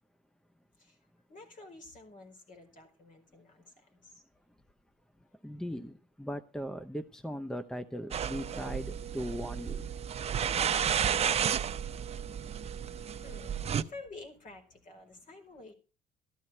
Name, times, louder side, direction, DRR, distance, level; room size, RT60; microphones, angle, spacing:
voice 1, 1.3-4.2 10.4-11.1 12.8-15.7, left 2 dB, 50° left, 5 dB, 5.0 m, -50 dB
voice 2, 5.4-9.8, equal, 5° left, 11 dB, 0.7 m, -38 dB
sound 1, 8.1-13.8, right 8 dB, 40° right, 0.8 m, -32 dB
14.0 x 12.0 x 4.4 m, 0.33 s
cardioid pair, 110°, 17 cm